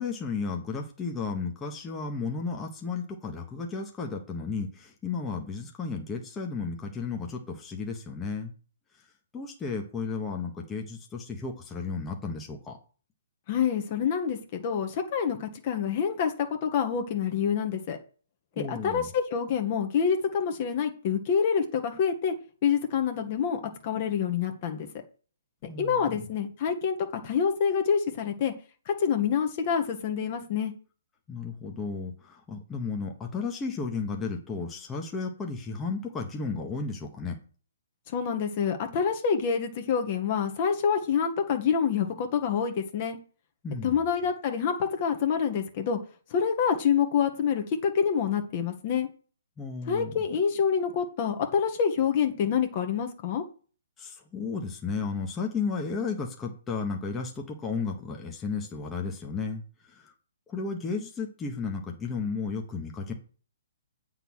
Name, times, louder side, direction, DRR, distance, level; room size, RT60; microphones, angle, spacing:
voice 1, 0.0-8.5 9.3-12.8 18.6-19.1 25.7-26.3 31.3-37.4 43.6-44.0 49.6-50.1 54.0-59.6 59.9-60.1 60.5-63.1, left 4 dB, 15° left, 1 dB, 1.3 m, -33 dB
voice 2, 13.5-16.3 16.6-18.0 18.6-22.3 22.6-24.9 25.8-27.0 27.2-28.5 28.9-30.7 38.1-43.2 43.8-46.0 46.3-49.1 49.9-53.4, left 7 dB, 40° left, 5 dB, 1.3 m, -27 dB
8.1 x 3.9 x 6.3 m, 0.39 s
hypercardioid pair, 135°, 0 cm